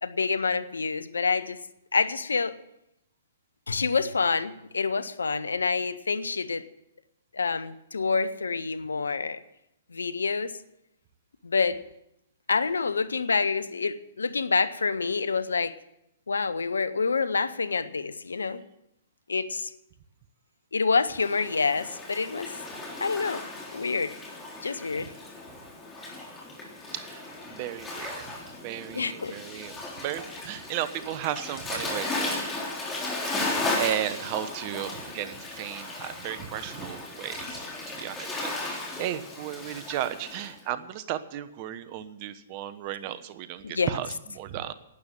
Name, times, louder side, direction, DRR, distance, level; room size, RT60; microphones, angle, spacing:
voice 1, 0.0-1.6 1.9-2.6 3.7-6.6 7.3-9.4 9.9-10.6 11.4-11.8 12.5-15.7 16.3-18.6 19.3-19.7 20.7-22.5 23.0-23.4 23.7-24.2 24.6-25.1 28.9-29.4 43.6-43.9, left 4 dB, 85° left, 0.8 m, -27 dB
Waves surf, 21.1-40.5, left 2 dB, 15° left, 3.7 m, -36 dB
voice 2, 26.9-28.4 28.6-32.4 33.3-44.7, right 11 dB, 40° right, 1.1 m, -35 dB
12.0 x 9.1 x 8.6 m
hypercardioid pair, 125°, 0 cm